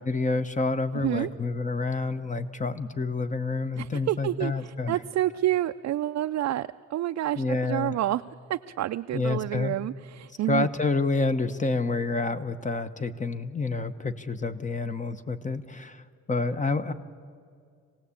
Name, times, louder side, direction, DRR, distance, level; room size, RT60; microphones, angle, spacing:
voice 1, 0.0-5.0 7.4-8.0 9.1-9.8 10.5-16.0 16.3-16.9, left 3 dB, 25° left, 11 dB, 1.1 m, -28 dB
voice 2, 3.8-8.2 8.5-10.7, right 14 dB, 60° right, 7 dB, 0.5 m, -29 dB
26.0 x 18.0 x 8.6 m, 2.2 s
cardioid pair, 90°, 30 cm